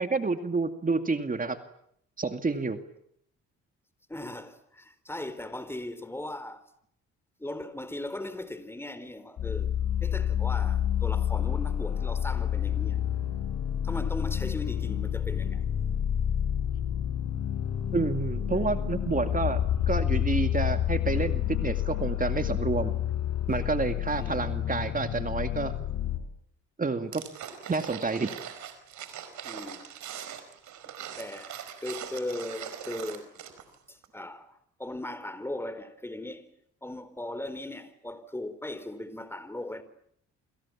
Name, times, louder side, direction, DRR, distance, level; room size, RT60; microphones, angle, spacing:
voice 1, 0.0-1.6 2.2-2.8 17.9-19.6 19.9-22.9 23.5-25.7 26.8-27.2 27.7-28.3, right 4 dB, 30° right, 2.3 m, -29 dB
voice 2, 4.1-6.6 7.4-9.7 10.0-13.0 13.8-15.6 18.5-18.7 24.2-24.4 29.4-29.8 30.8-33.3 33.9-36.5 36.8-39.8, left 1 dB, 10° left, 4.3 m, -38 dB
sound 1, 9.4-26.2, left 10 dB, 70° left, 5.0 m, -29 dB
sound 2, 27.1-33.8 34.0-34.1, right 9 dB, 75° right, 5.0 m, -41 dB
29.5 x 26.5 x 7.4 m
cardioid pair, 85°, 29 cm